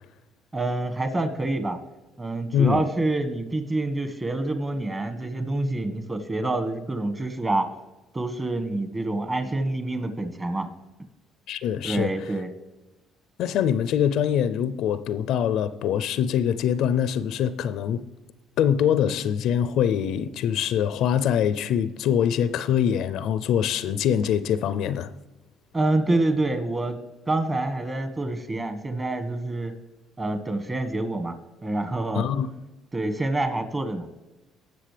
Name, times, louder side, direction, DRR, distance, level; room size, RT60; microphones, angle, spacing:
voice 1, 0.5-1.8 2.2-7.7 8.1-10.7 11.8-12.5 25.7-27.0 27.3-29.7 30.2-31.3 31.6-32.2 32.9-34.1, right 2 dB, 25° right, 1.5 m, -27 dB
voice 2, 2.5-2.8 11.5-12.1 13.4-18.1 18.6-25.1 32.1-32.5, left 9 dB, 70° left, 0.4 m, -24 dB
18.0 x 6.3 x 3.4 m
supercardioid pair, 70°, 0 cm